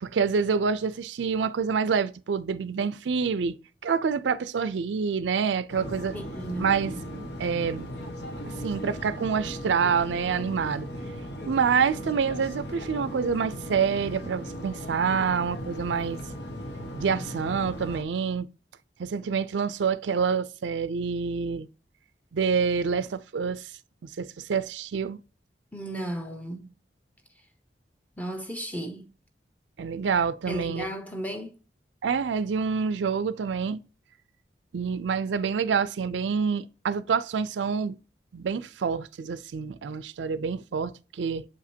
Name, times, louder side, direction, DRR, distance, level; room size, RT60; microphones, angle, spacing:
voice 1, 0.0-3.6 3.8-6.1 6.6-7.9 8.6-10.9 11.5-16.2 16.9-18.5 19.0-21.7 22.3-23.7 24.2-25.2 29.8-30.9 32.0-33.8 34.7-38.0 38.3-41.4, right 6 dB, 85° right, 0.4 m, -27 dB
sound 1, 5.7-18.0, equal, 70° left, 1.3 m, -37 dB
voice 2, 6.1-6.8 25.7-26.7 28.2-29.1 30.5-31.6, right 1 dB, 10° left, 0.8 m, -34 dB
7.4 x 5.0 x 2.7 m
head